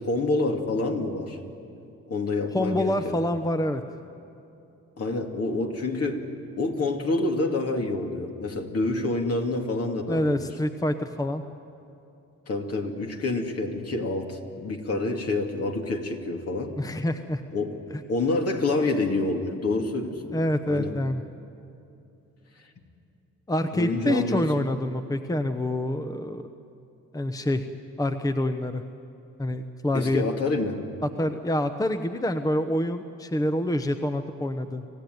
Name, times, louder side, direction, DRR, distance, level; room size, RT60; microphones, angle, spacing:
voice 1, 0.0-1.4 2.1-3.1 5.0-6.2 6.6-10.4 12.5-16.7 17.5-17.8 18.1-20.9 23.7-24.5 29.9-30.8, left 2 dB, 50° left, 3 dB, 2.7 m, -27 dB
voice 2, 2.5-3.8 10.1-11.4 16.8-17.4 20.3-21.2 23.5-26.4 27.1-27.7 28.0-28.8 29.4-30.2 31.0-34.8, left 1 dB, 10° left, 8 dB, 0.9 m, -26 dB
26.5 x 16.0 x 9.4 m, 2.8 s
cardioid pair, 90°, 30 cm